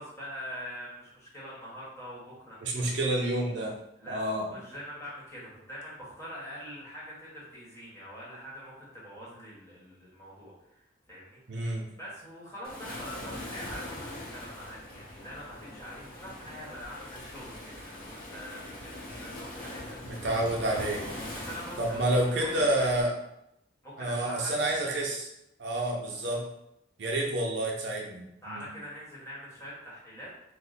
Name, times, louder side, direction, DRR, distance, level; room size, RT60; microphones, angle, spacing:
voice 1, 0.0-2.9 4.0-4.2 4.5-11.6 12.0-20.3 21.3-22.9 23.8-24.7 28.4-30.3, equal, 15° left, -8 dB, 1.1 m, -44 dB
voice 2, 2.6-3.8 4.1-4.5 11.5-11.9 20.0-21.1 21.8-23.1 24.0-25.3 25.6-26.4 27.0-28.7, right 1 dB, 60° right, -1 dB, 0.6 m, -29 dB
Waves surf, 12.6-23.0, left 1 dB, 50° left, 0.8 m, -42 dB
3.1 x 2.1 x 3.9 m, 0.84 s
head